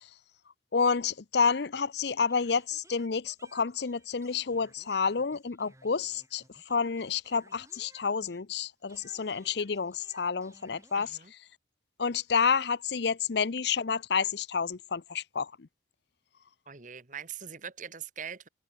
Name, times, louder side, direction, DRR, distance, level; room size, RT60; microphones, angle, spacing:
voice 1, 0.7-11.2 12.0-15.5, left 5 dB, 60° left, 0.6 m, -29 dB
sound 1, 2.3-8.6 8.9-11.1, right 2 dB, 15° right, 6.2 m, -60 dB
voice 2, 10.9-11.3 16.7-18.5, right 7 dB, 45° right, 1.5 m, -42 dB
head